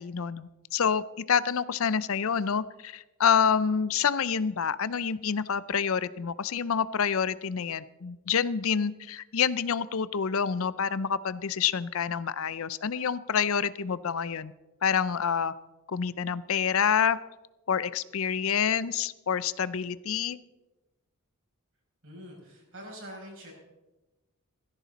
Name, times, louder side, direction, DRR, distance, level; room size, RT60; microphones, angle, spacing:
voice 1, 0.0-14.5 14.8-15.5 15.9-17.2 17.7-20.4, left 7 dB, 65° left, 17 dB, 0.5 m, -27 dB
voice 2, 22.0-23.5, equal, 60° right, -2 dB, 6.5 m, -44 dB
17.5 x 15.0 x 4.1 m, 1.1 s
head